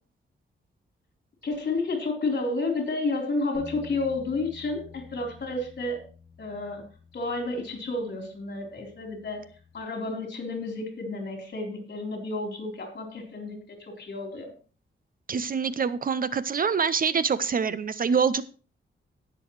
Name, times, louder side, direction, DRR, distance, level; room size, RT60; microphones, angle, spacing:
voice 1, 1.4-6.0 6.4-6.8 7.1-9.4 9.7-14.5, left 3 dB, 55° left, 1 dB, 3.9 m, -31 dB
sound 1, 3.5-9.8, left 4 dB, 70° right, 4.4 m, -50 dB
voice 2, 15.3-18.4, right 6 dB, 45° right, 15 dB, 0.6 m, -25 dB
18.0 x 6.9 x 3.2 m, 0.38 s
wide cardioid pair, 140°, 21 cm